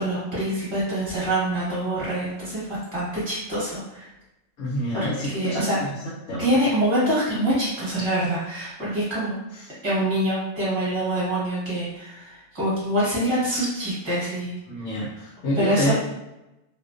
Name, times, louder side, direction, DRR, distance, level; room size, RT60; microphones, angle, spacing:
voice 1, 0.0-4.1 4.9-5.8 6.4-9.4 9.8-14.5 15.5-15.9, right 1 dB, 25° right, -9 dB, 0.9 m, -25 dB
voice 2, 4.6-5.9 6.3-6.5 14.7-15.9, equal, 75° left, -7 dB, 1.0 m, -27 dB
2.4 x 2.1 x 2.4 m, 0.96 s
omnidirectional pair, 1.3 m